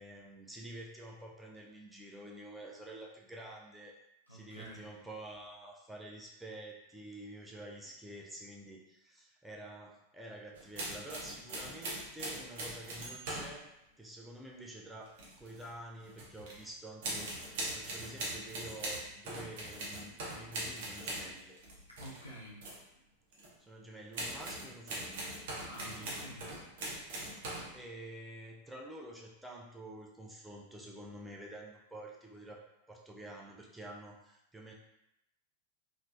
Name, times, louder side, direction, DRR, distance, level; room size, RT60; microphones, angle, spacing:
voice 1, 0.0-4.0 4.3-13.7 14.0-21.5 23.6-25.3 25.8-26.1 27.2-32.6 32.9-34.7, right 1 dB, 5° right, -2 dB, 0.4 m, -49 dB
voice 2, 4.3-4.9 21.8-22.7 22.9-23.0 25.6-26.5, equal, 85° right, -5 dB, 0.7 m, -49 dB
sound 1, 10.5-13.6 15.1-15.7 16.0-16.6 17.0-22.2 22.6-22.8 23.3-23.5 24.1-27.8, right 1 dB, 55° right, 0.8 m, -41 dB
3.1 x 2.1 x 2.5 m, 0.84 s
figure-of-eight pair, 90°, 0 cm